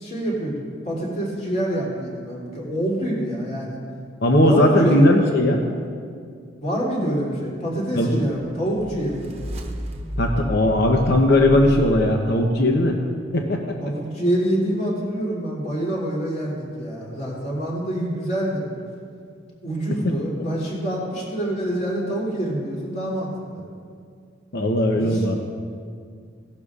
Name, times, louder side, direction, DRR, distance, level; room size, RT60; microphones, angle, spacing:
voice 1, 0.0-3.8 4.5-5.3 6.6-9.4 13.8-18.6 19.6-23.6 24.9-25.2, right 1 dB, 40° left, -5 dB, 3.0 m, -26 dB
voice 2, 4.2-5.6 7.9-8.2 10.2-13.0 13.3-13.8 19.9-20.0 24.5-25.4, left 1 dB, 60° left, 2 dB, 0.8 m, -18 dB
sound 1, 8.3-12.5, equal, 35° right, 1.0 m, -32 dB
17.5 x 11.5 x 2.5 m, 2.2 s
head